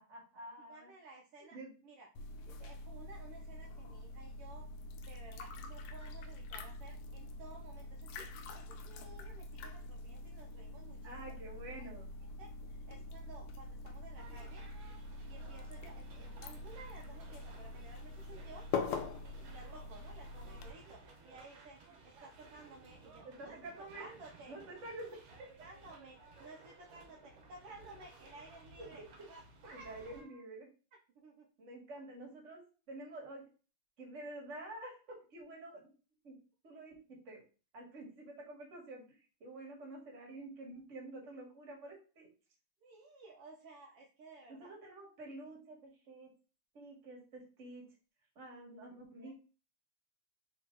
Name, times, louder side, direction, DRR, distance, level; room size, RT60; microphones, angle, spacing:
voice 1, 0.0-0.9 1.5-1.7 11.0-12.1 23.2-24.0 24.5-25.5 29.7-30.7 31.6-33.5 34.0-35.9 36.2-36.3 36.6-37.0 37.2-37.4 37.7-42.3 44.6-46.3 46.7-47.8 48.3-49.3, right 2 dB, 40° right, -2 dB, 1.2 m, -49 dB
voice 2, 0.6-1.6 1.8-2.1 2.4-4.7 5.1-8.3 8.5-11.3 11.8-11.9 12.4-14.6 15.2-18.7 19.2-24.5 25.6-30.4 31.1-31.5 42.8-44.7 49.2-49.3, right 3 dB, 85° right, -1 dB, 1.2 m, -55 dB
sound 1, 2.2-20.7, left 3 dB, 80° left, 1.6 m, -44 dB
sound 2, 14.2-30.2, right 3 dB, 60° right, 1.5 m, -58 dB
4.6 x 2.9 x 3.7 m, 0.35 s
omnidirectional pair, 3.5 m